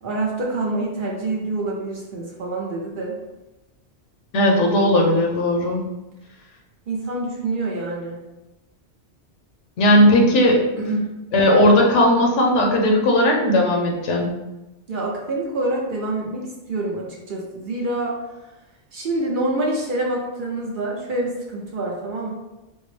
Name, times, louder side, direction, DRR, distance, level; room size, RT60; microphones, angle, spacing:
voice 1, 0.0-3.1 6.9-8.2 10.8-11.1 14.9-18.2 18.9-22.3, right 2 dB, 55° right, -2 dB, 0.8 m, -26 dB
voice 2, 4.3-5.9 9.8-10.6 11.3-14.4, left 1 dB, 80° left, 0 dB, 1.0 m, -17 dB
4.4 x 2.0 x 3.1 m, 1.0 s
omnidirectional pair, 1.2 m